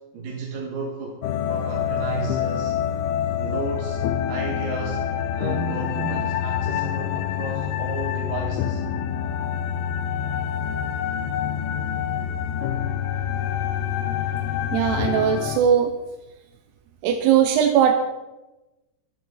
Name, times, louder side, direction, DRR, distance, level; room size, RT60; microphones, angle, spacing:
voice 1, 0.1-1.2 1.5-2.7 3.4-4.0 4.3-5.0 5.3-8.8, right 4 dB, 55° right, -2 dB, 3.1 m, -32 dB
sound 1, 1.2-15.6, left 9 dB, 90° left, 2.2 m, -26 dB
voice 2, 14.7-15.9 17.0-17.9, right 9 dB, 75° right, 5 dB, 2.7 m, -19 dB
23.0 x 10.5 x 4.0 m, 1.0 s
omnidirectional pair, 5.5 m